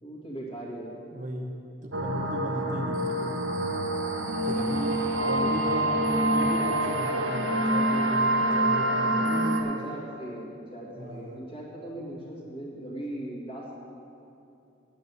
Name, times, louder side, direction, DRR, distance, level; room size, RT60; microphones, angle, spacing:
voice 1, 0.0-1.0 5.2-5.4 9.2-13.7, right 1 dB, 25° left, -4 dB, 2.0 m, -38 dB
voice 2, 1.1-1.5 1.8-3.4 4.4-9.5 11.0-11.4, right 1 dB, 40° right, 1 dB, 0.8 m, -36 dB
sound 1, 1.9-9.6, right 1 dB, 80° right, 1.2 m, -26 dB
9.2 x 7.7 x 8.1 m, 2.8 s
head